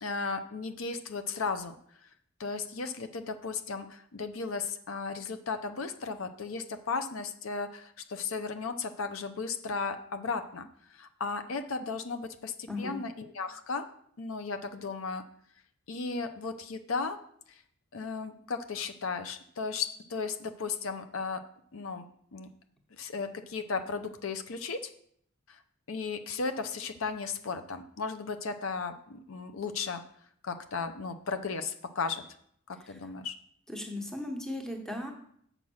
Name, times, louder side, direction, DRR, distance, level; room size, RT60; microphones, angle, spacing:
voice 1, 0.0-1.7 2.4-10.7 10.9-13.9 14.2-15.2 15.9-17.2 17.9-21.4 21.7-22.0 22.3-22.5 22.9-24.9 25.5-25.6 25.9-30.0 30.4-32.2 32.7-33.4, left 4 dB, 80° left, 8 dB, 0.6 m, -35 dB
voice 2, 12.7-13.0 32.9-33.0 33.7-35.1, left 1 dB, 5° left, 3 dB, 1.0 m, -37 dB
7.3 x 5.2 x 6.2 m, 0.66 s
head